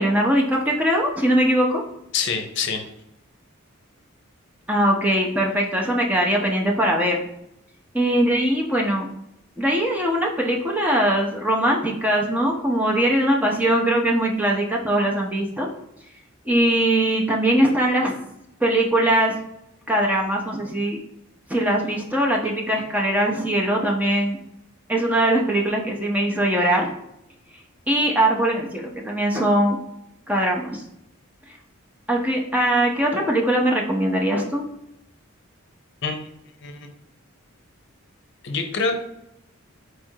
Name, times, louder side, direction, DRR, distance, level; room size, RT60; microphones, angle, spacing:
voice 1, 0.0-1.8 4.7-7.2 7.9-9.1 9.6-15.7 16.5-18.2 18.6-19.4 19.9-21.0 21.5-24.4 24.9-26.9 27.9-29.8 30.3-30.8 32.1-34.6, right 1 dB, 10° right, -1 dB, 0.6 m, -21 dB
voice 2, 2.1-2.8 36.0-36.2 36.6-36.8 38.4-39.0, left 4 dB, 55° left, 5 dB, 0.7 m, -25 dB
4.4 x 2.5 x 4.5 m, 0.80 s
head